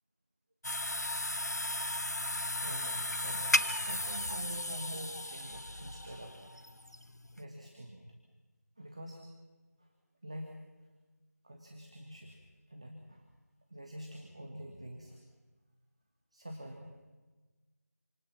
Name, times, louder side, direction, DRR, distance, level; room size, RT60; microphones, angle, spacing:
sound 1, 0.6-7.4, left 1 dB, 70° left, 1.2 m, -35 dB
voice 1, 2.6-6.4 7.4-8.1 8.8-9.2 9.8-9.9 10.2-10.6 11.4-12.4 12.7-13.3 13.7-15.3 16.3-16.9, equal, 20° right, 2 dB, 1.5 m, -46 dB
28.0 x 26.5 x 5.9 m, 1.3 s
figure-of-eight pair, 175°, 9 cm